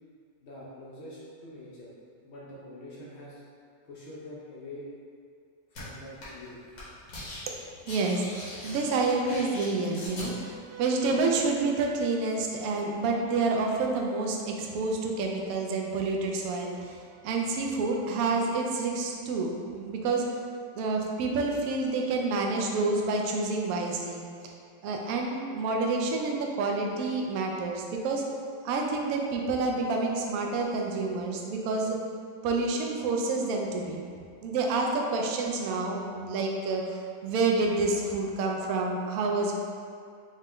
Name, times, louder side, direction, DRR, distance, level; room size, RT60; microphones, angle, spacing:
voice 1, 0.4-1.9 2.2-3.4 3.8-4.9 5.7-6.6, left 1 dB, 80° left, -6 dB, 0.5 m, -45 dB
sound 1, 5.7-5.8 6.2-6.5 6.7-7.4 7.7-10.3, left 1 dB, 55° left, 1.5 m, -41 dB
voice 2, 7.9-20.3 20.7-24.2 24.8-28.2 28.6-32.0 32.4-34.1 34.4-39.5, right 3 dB, 75° right, 0 dB, 0.8 m, -28 dB
4.9 x 2.2 x 3.6 m, 2.3 s
omnidirectional pair, 2.0 m